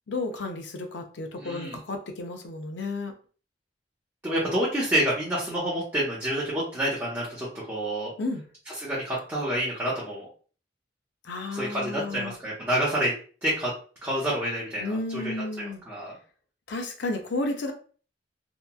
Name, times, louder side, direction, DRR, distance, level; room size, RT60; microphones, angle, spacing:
voice 1, 0.1-3.1 8.2-8.4 11.2-12.4 14.8-15.8 16.7-17.7, left 2 dB, 75° left, 4 dB, 0.5 m, -32 dB
voice 2, 1.4-1.8 4.2-8.1 8.8-10.3 11.5-13.1 13.4-13.7 14.0-16.1, right 1 dB, 15° right, -8 dB, 0.8 m, -28 dB
2.9 x 2.3 x 2.2 m, 0.40 s
head